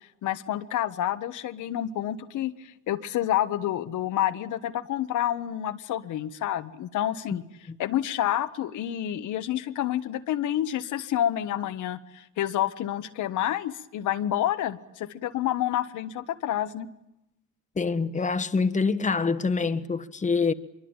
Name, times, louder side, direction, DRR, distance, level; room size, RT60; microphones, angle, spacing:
voice 1, 0.2-7.4 7.8-16.9, left 12 dB, 80° left, 1.3 m, -29 dB
voice 2, 17.8-20.5, left 4 dB, 25° left, 1.3 m, -25 dB
25.0 x 23.0 x 8.9 m
cardioid pair, 90°, 30 cm